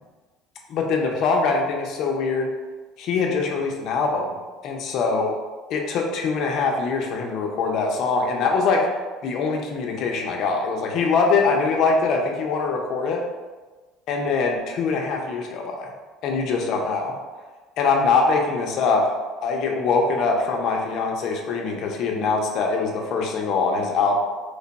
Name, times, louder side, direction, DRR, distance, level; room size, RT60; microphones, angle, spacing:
voice 1, 0.7-2.5 3.0-4.4 4.6-5.3 5.7-8.9 9.2-13.2 14.1-15.9 16.2-17.1 17.8-19.1 19.4-24.2, left 4 dB, 55° left, 1 dB, 0.6 m, -23 dB
3.3 x 2.2 x 3.9 m, 1.3 s
cardioid pair, 140°, 0 cm